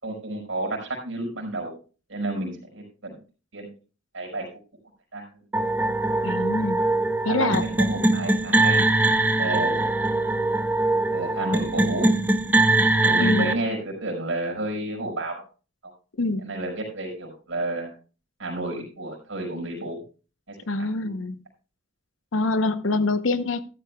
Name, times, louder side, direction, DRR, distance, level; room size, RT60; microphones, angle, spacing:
voice 1, 0.0-1.7 2.1-3.2 3.5-3.7 4.1-4.5 5.1-5.2 7.3-7.5 7.8-8.9 9.3-9.9 11.1-12.1 13.0-15.4 16.4-17.9 18.4-20.0 20.5-21.1, right 2 dB, 80° right, 5.4 m, -31 dB
sound 1, 5.5-13.5, right 2 dB, 10° right, 0.5 m, -22 dB
voice 2, 6.2-6.9 7.2-7.7 13.2-13.5 16.2-16.6 20.7-21.4 22.3-23.6, left 2 dB, 85° left, 0.9 m, -25 dB
14.5 x 12.5 x 2.3 m
head